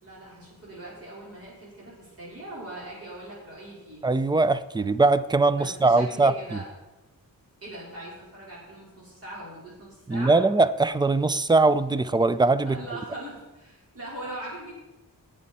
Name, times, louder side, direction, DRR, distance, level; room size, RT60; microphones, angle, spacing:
voice 1, 0.0-4.0 5.6-6.7 7.6-10.4 12.6-14.7, right 1 dB, 40° right, -7 dB, 4.4 m, -41 dB
voice 2, 4.0-6.6 10.1-12.8, right 3 dB, 15° right, 14 dB, 0.3 m, -21 dB
18.5 x 7.5 x 4.2 m, 1.0 s
wide cardioid pair, 160°, 36 cm